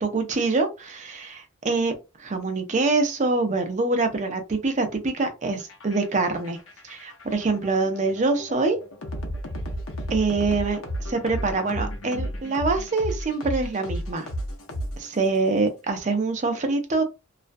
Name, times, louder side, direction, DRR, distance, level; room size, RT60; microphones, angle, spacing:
voice 1, 0.0-6.6 6.8-8.8 10.1-10.8 11.1-14.3 15.0-17.0, right 3 dB, 35° right, 0.5 m, -25 dB
sound 1, 5.6-15.4, equal, 85° left, 0.7 m, -33 dB
2.4 x 2.1 x 2.5 m
head